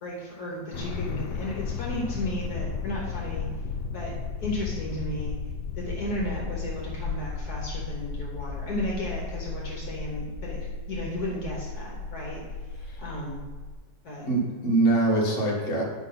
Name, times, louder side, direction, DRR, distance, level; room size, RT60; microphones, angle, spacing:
voice 1, 0.0-3.5 3.9-5.3 5.8-12.4 13.0-13.4 14.0-14.3, left 1 dB, 60° left, -3 dB, 1.8 m, -34 dB
sound 1, 0.7-13.7, left 5 dB, 75° left, 1.2 m, -34 dB
voice 2, 14.3-15.8, right 2 dB, 45° left, -3 dB, 1.7 m, -23 dB
9.0 x 5.5 x 4.0 m, 1.4 s
omnidirectional pair, 1.9 m